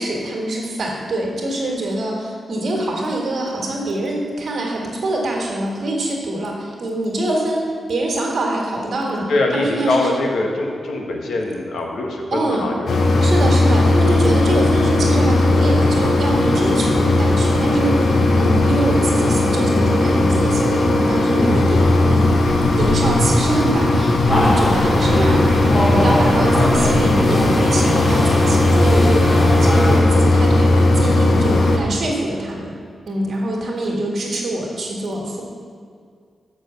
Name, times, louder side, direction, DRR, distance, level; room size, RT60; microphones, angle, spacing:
voice 1, 0.0-9.3 9.5-10.1 12.3-12.7 13.2-22.4 22.7-25.4 25.7-29.2 29.6-32.8 33.1-35.4, right 1 dB, 50° right, -2 dB, 1.9 m, -24 dB
voice 2, 9.3-13.3, left 2 dB, 85° left, 0 dB, 1.4 m, -23 dB
Mechanisms, 12.9-31.8, left 2 dB, 55° left, 0.8 m, -16 dB
sound 1, 24.3-30.0, equal, 20° left, 1.1 m, -20 dB
6.8 x 6.2 x 7.0 m, 2.1 s
wide cardioid pair, 170°, 0 cm